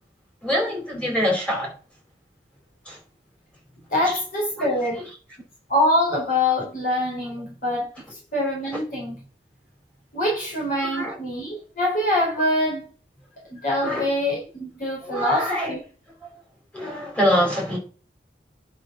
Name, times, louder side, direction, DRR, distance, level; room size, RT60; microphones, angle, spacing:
voice 1, 0.4-1.7 2.9-3.0 4.6-4.7 10.9-11.2 13.8-14.1 15.0-15.7 16.7-17.8, equal, 5° left, 4.3 m, -24 dB
voice 2, 3.9-5.0 5.7-9.2 10.1-12.9 13.5-15.8, left 1 dB, 50° left, 3.8 m, -24 dB
10.0 x 5.1 x 6.0 m
head